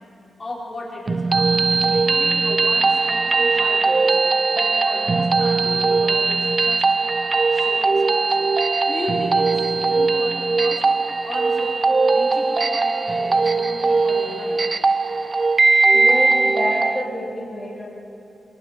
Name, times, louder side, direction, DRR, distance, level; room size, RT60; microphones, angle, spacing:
voice 1, 0.4-4.1 4.5-6.8 7.5-8.5 8.9-10.8 11.2-11.7 12.1-14.6 15.7-15.8, left 2 dB, 30° left, -4 dB, 4.6 m, -35 dB
sound 1, 1.1-17.0, right 3 dB, 30° right, 0.5 m, -19 dB
voice 2, 15.9-17.8, left 1 dB, 5° left, -9 dB, 3.1 m, -27 dB
26.0 x 24.5 x 5.3 m, 2.8 s
wide cardioid pair, 175°, 0 cm